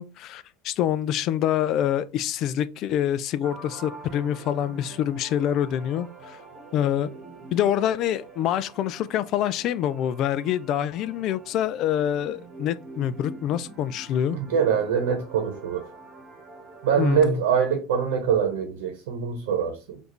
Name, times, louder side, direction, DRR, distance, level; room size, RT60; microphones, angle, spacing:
voice 1, 0.0-6.4 6.7-7.1 7.5-14.4 17.0-17.4, left 10 dB, 55° left, 0.4 m, -26 dB
sound 1, 3.4-17.2, right 3 dB, 35° right, 1.2 m, -45 dB
voice 2, 14.3-15.9 16.8-20.0, right 7 dB, 85° right, 1.0 m, -24 dB
4.9 x 2.6 x 3.1 m
supercardioid pair, 115°, 0 cm